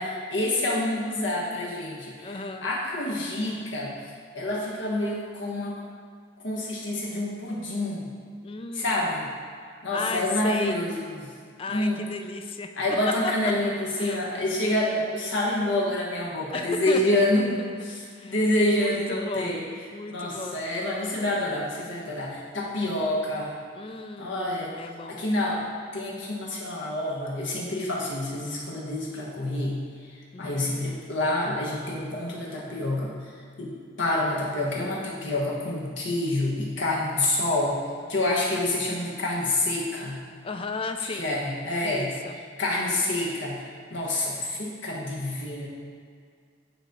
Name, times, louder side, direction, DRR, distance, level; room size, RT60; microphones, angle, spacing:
voice 1, 0.0-4.0 4.3-5.8 6.4-8.1 8.7-9.3 9.8-11.3 11.7-12.0 12.8-19.7 20.1-23.6 24.2-24.7 25.1-25.7 25.9-29.8 30.4-33.1 33.6-33.7 34.0-37.8 38.1-40.2 41.1-42.1 42.6-43.6 43.9-45.7, left 1 dB, 75° left, -4 dB, 1.4 m, -27 dB
voice 2, 2.2-2.7 8.4-9.2 9.9-10.8 11.6-12.7 14.0-14.2 16.5-17.0 18.1-18.3 18.7-20.7 23.8-25.3 30.3-30.7 38.7-39.0 40.4-41.3 41.8-42.3, left 3 dB, 30° left, 6 dB, 0.4 m, -35 dB
9.2 x 3.3 x 4.0 m, 2.2 s
head